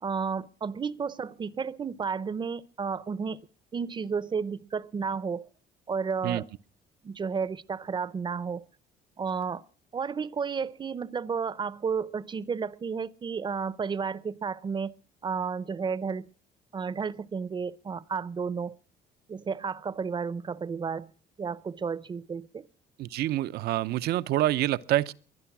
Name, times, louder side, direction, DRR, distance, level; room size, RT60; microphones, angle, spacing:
voice 1, 0.0-3.4 3.7-5.5 5.9-6.5 7.0-8.6 9.2-9.6 9.9-16.3 16.7-18.8 19.3-21.1 21.4-22.6, right 5 dB, 25° right, 0.7 m, -32 dB
voice 2, 23.0-25.1, right 14 dB, 70° right, 0.7 m, -27 dB
21.5 x 11.0 x 6.0 m
cardioid pair, 110°, 17 cm